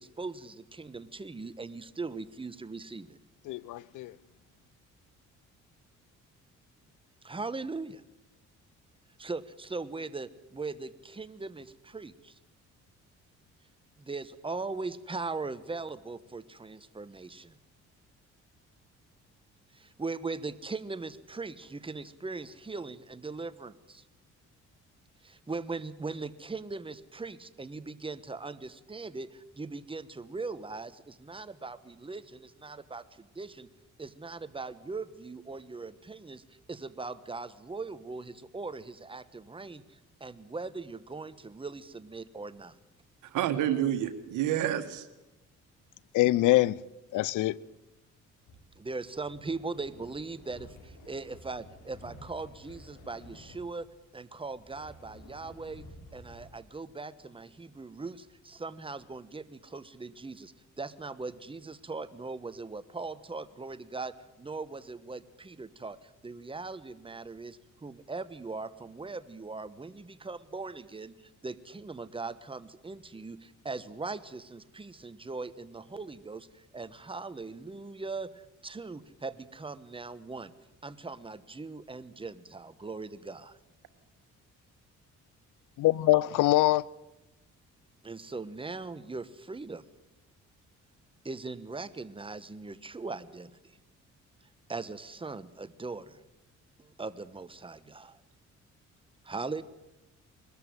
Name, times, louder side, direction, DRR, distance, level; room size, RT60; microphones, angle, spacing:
voice 1, 0.0-3.2 7.2-8.0 9.2-12.4 14.0-17.6 19.7-24.0 25.2-33.7 34.0-36.4 36.7-42.8 48.8-53.9 54.1-55.9 56.1-80.5 80.8-83.5 88.0-89.8 91.2-93.8 94.7-96.2 96.8-98.2 99.2-99.6, right 3 dB, 15° right, 1.2 m, -40 dB
voice 2, 3.5-4.1 46.1-46.8 47.1-47.6 85.8-86.8, left 17 dB, 85° left, 0.6 m, -24 dB
voice 3, 43.3-45.1, right 11 dB, 90° right, 1.7 m, -28 dB
sound 1, 48.5-56.5, left 1 dB, 70° left, 6.5 m, -52 dB
21.0 x 13.5 x 9.5 m
cardioid pair, 90°, 30 cm